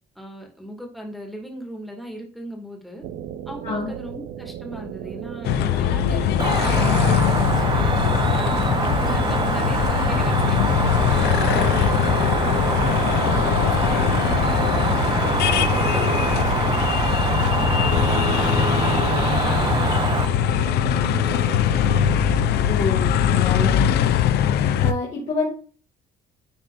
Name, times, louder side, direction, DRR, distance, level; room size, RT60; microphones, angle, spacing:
voice 1, 0.2-3.0 3.5-7.9 8.3-10.7 11.2-17.0 17.4-21.8, equal, ahead, 1 dB, 2.4 m, -38 dB
sound 1, 3.0-22.5, right 9 dB, 85° right, 0.7 m, -36 dB
sound 2, 5.5-24.9, left 9 dB, 75° left, 0.7 m, -21 dB
Cricket, 6.4-20.3, right 4 dB, 25° right, 1.0 m, -24 dB
voice 2, 11.1-11.6 22.7-23.7 24.8-25.5, left 4 dB, 40° left, -3 dB, 2.3 m, -27 dB
10.5 x 4.4 x 2.6 m, 0.41 s
cardioid pair, 110°, 17 cm